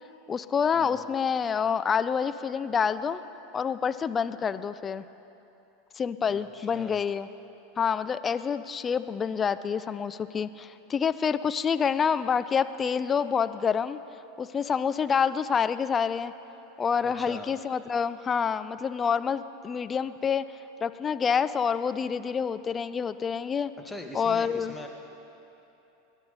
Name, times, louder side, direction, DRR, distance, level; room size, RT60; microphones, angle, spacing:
voice 1, 0.3-3.2 3.5-5.0 6.0-7.3 7.8-14.0 14.4-16.3 16.8-20.4 20.8-23.7 24.1-24.7, left 6 dB, 25° left, 13 dB, 0.5 m, -27 dB
voice 2, 6.3-7.0 17.0-17.5 23.8-24.9, left 1 dB, 5° left, 1 dB, 1.8 m, -42 dB
23.5 x 11.0 x 4.2 m, 3.0 s
hypercardioid pair, 85°, 0 cm